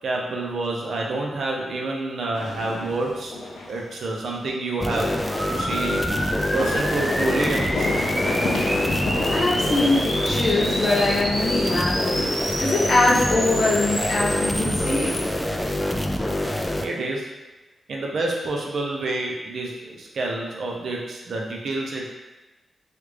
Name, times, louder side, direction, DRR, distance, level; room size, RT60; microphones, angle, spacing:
voice 1, 0.0-3.3 3.7-5.1 5.5-6.0 6.5-8.0 16.8-17.3 17.9-22.1, right 2 dB, 70° right, -1 dB, 0.6 m, -28 dB
sound 1, 2.3-3.9 4.2-4.3 5.6-11.7, left 2 dB, 90° left, 0.5 m, -31 dB
sound 2, 4.8-16.9, left 1 dB, 10° left, 0.3 m, -26 dB
sound 3, 5.3-15.2, equal, 30° right, 1.1 m, -29 dB
voice 2, 9.3-15.2, left 2 dB, 55° left, -5 dB, 0.8 m, -23 dB
3.2 x 2.4 x 3.2 m, 1.1 s
wide cardioid pair, 95°, 0 cm